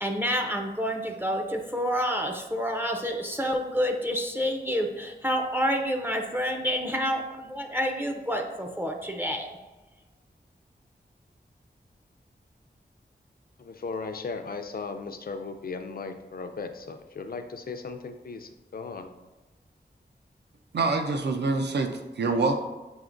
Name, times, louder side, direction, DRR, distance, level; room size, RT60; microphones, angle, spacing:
voice 1, 0.0-9.5, equal, 10° right, 3 dB, 0.4 m, -28 dB
voice 2, 13.6-19.1, left 4 dB, 55° left, 7 dB, 0.4 m, -37 dB
voice 3, 20.7-22.6, right 3 dB, 75° right, 5 dB, 0.5 m, -26 dB
7.1 x 2.8 x 2.5 m, 1.1 s
wide cardioid pair, 75°, 18 cm